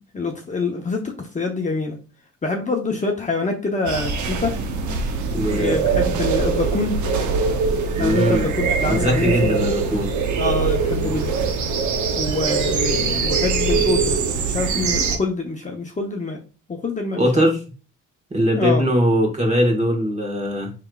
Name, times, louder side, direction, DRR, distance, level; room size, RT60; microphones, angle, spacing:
voice 1, 0.0-2.0 2.4-4.6 5.5-7.0 8.0-9.7 10.4-11.4 12.1-14.1 14.5-16.4 16.7-17.5 18.5-18.8, left 3 dB, 25° left, 1 dB, 0.8 m, -25 dB
sound 1, 3.9-15.2, right 5 dB, 75° right, 0.8 m, -22 dB
voice 2, 5.3-5.8 8.0-8.5 8.9-10.1 17.2-17.6 18.3-20.7, equal, 25° right, 1 dB, 1.5 m, -20 dB
4.7 x 3.5 x 2.3 m, 0.34 s
cardioid pair, 90°, 30 cm